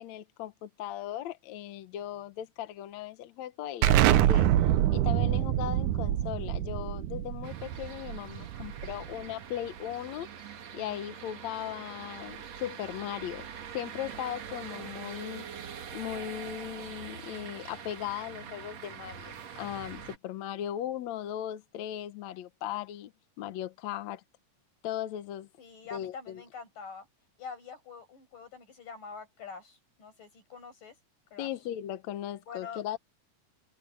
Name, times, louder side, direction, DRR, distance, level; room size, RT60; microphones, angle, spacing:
voice 1, 0.0-4.5 4.9-10.3 10.7-13.5 13.7-15.7 15.9-23.1 23.4-24.2 24.8-25.5 25.9-26.4 31.4-33.0, left 11 dB, 70° left, 2.1 m, -38 dB
Explosion, 3.8-9.2, right 12 dB, 80° right, 2.3 m, -26 dB
sound 1, 7.4-20.2, right 7 dB, 60° right, 2.7 m, -44 dB
voice 2, 25.6-27.1 27.4-31.0 31.3-31.5 32.5-33.0, left 5 dB, 90° left, 9.1 m, -45 dB
omnidirectional pair, 3.7 m